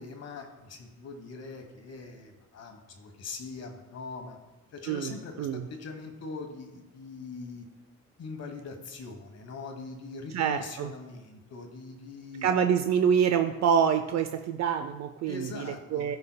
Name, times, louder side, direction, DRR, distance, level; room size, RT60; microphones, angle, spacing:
voice 1, 0.0-4.4 4.7-7.6 8.2-12.5 15.3-16.2, left 4 dB, 55° left, 4 dB, 1.3 m, -42 dB
voice 2, 4.9-5.6 10.3-10.9 12.4-16.2, right 7 dB, 65° right, 8 dB, 0.5 m, -26 dB
15.5 x 5.4 x 2.2 m, 1.1 s
cardioid pair, 90°, 30 cm